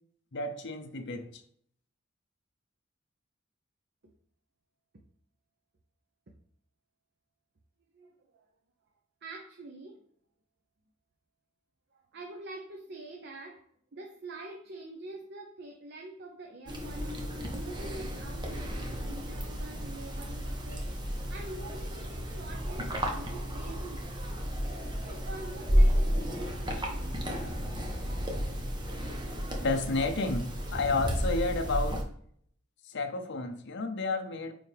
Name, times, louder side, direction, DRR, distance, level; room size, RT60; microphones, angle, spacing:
voice 1, 0.3-1.3 29.6-32.0 32.9-34.5, left 3 dB, 60° left, 0.7 m, -31 dB
voice 2, 7.9-8.4 9.2-10.0 11.9-13.7 13.9-24.4 24.9-27.6, right 2 dB, 55° right, 0.7 m, -46 dB
sound 1, 16.7-32.0, equal, 20° right, 1.0 m, -32 dB
8.8 x 3.5 x 3.4 m
head